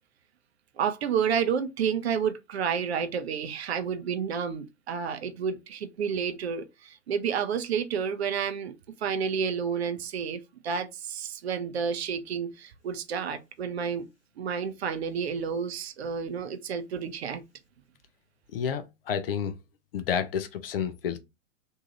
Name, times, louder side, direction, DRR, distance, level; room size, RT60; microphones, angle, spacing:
voice 1, 0.8-14.1 14.4-17.4, right 7 dB, 55° right, 0.5 m, -30 dB
voice 2, 18.5-19.5 19.9-21.2, left 7 dB, 45° left, 0.5 m, -30 dB
2.7 x 2.2 x 2.9 m
figure-of-eight pair, 110°, 40 cm